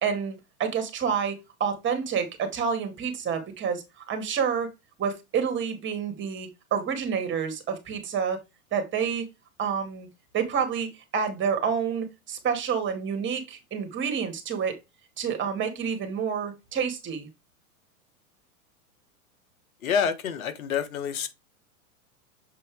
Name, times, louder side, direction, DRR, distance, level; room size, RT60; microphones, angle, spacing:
voice 1, 0.0-4.7 5.0-8.4 8.7-9.3 9.6-10.1 10.3-14.7 15.2-17.3, right 7 dB, 25° right, 2.4 m, -28 dB
voice 2, 19.8-21.3, left 7 dB, 75° left, 1.6 m, -27 dB
7.5 x 4.2 x 3.5 m
hypercardioid pair, 110°, 42 cm